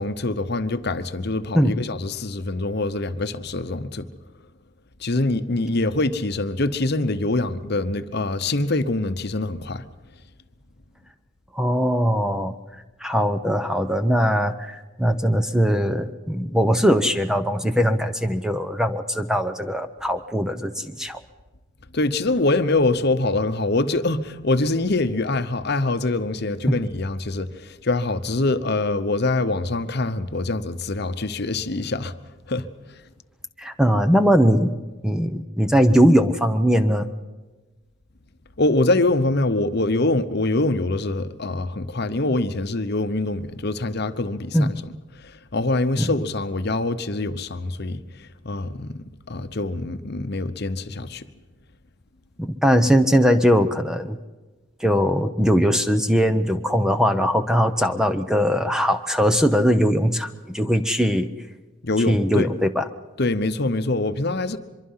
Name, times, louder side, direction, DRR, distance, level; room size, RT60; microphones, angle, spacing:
voice 1, 0.0-4.1 5.0-9.8 21.9-32.1 32.5-32.9 38.6-44.8 45.1-49.0 49.3-51.3 61.8-62.5 63.2-64.6, left 2 dB, 50° left, 1.0 m, -24 dB
voice 2, 11.5-12.6 13.0-21.2 33.6-34.7 35.0-37.1 44.5-44.7 46.0-46.1 52.4-54.2 54.8-61.3 62.1-62.8, equal, 5° right, 0.7 m, -20 dB
24.0 x 23.0 x 5.7 m
head